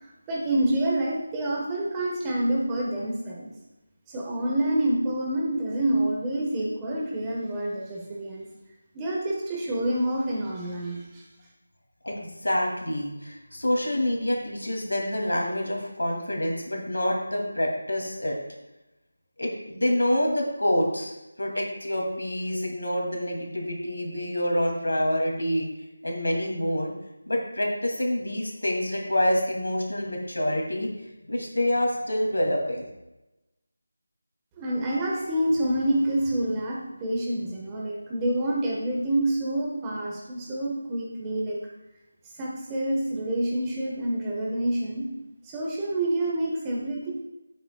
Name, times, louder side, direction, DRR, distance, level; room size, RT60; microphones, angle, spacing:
voice 1, 0.3-3.5 4.1-8.4 8.9-11.2 34.6-41.6 42.3-45.1 45.4-47.1, right 1 dB, 15° right, -3 dB, 1.3 m, -27 dB
voice 2, 12.0-18.4 19.4-21.1 21.4-25.7 26.0-26.9 27.3-30.9 31.3-32.9, left 1 dB, 85° left, 0 dB, 2.6 m, -27 dB
9.9 x 8.5 x 2.3 m, 0.99 s
figure-of-eight pair, 165°, 0 cm